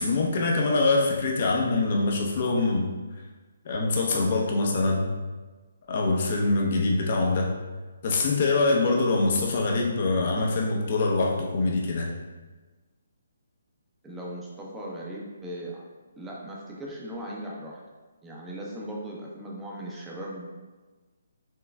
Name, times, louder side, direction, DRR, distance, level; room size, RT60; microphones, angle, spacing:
voice 1, 0.0-2.9 3.6-5.1 5.9-7.5 8.0-12.1, left 3 dB, 50° left, -1 dB, 0.7 m, -24 dB
voice 2, 14.0-15.8 16.2-17.8 18.2-20.5, right 1 dB, 10° right, -4 dB, 0.7 m, -38 dB
4.5 x 3.1 x 2.2 m, 1.3 s
hypercardioid pair, 145°, 0 cm